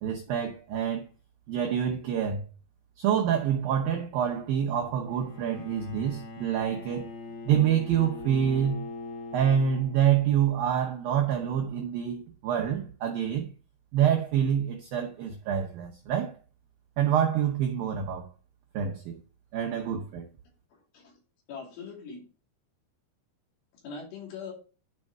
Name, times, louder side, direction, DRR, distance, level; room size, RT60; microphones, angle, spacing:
voice 1, 0.0-1.0 1.5-2.4 3.0-7.1 7.5-8.8 9.3-13.5 13.9-16.3 17.0-18.3 18.7-19.2 19.5-20.3, right 9 dB, 80° right, 2.1 m, -27 dB
Bowed string instrument, 5.1-10.3, left 3 dB, 55° left, 4.5 m, -41 dB
voice 2, 20.7-21.2 21.5-22.2 23.8-24.5, left 5 dB, 75° left, 5.3 m, -41 dB
12.0 x 5.4 x 3.6 m
omnidirectional pair, 5.6 m